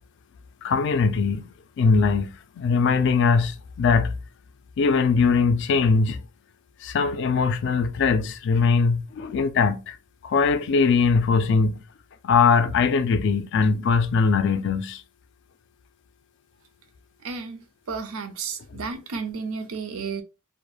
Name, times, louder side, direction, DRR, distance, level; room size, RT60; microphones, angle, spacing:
voice 1, 0.6-1.4 1.8-2.3 2.6-4.1 4.8-6.2 6.8-10.0 10.2-11.8 12.2-15.0 18.7-18.8, left 5 dB, 55° left, 0.3 m, -21 dB
voice 2, 17.2-17.6 17.9-20.2, right 5 dB, 85° right, 0.5 m, -32 dB
2.2 x 2.0 x 3.1 m
head